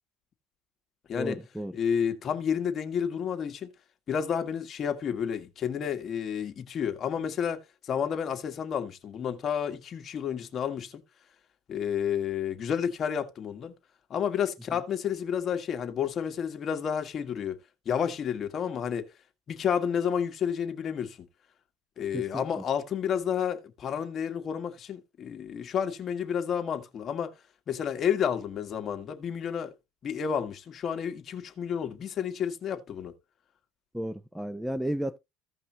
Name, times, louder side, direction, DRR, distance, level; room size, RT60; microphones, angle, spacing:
voice 1, 1.2-1.7 14.7-14.8 22.1-22.6 33.9-35.2, equal, 5° right, 0.5 m, -33 dB
voice 2, 1.7-3.7 4.1-11.0 11.7-13.7 14.1-17.6 17.9-19.1 19.5-21.3 22.0-27.4 27.7-29.7 30.0-33.1, left 8 dB, 40° left, 1.8 m, -30 dB
16.0 x 5.4 x 2.9 m
cardioid pair, 125°, 0 cm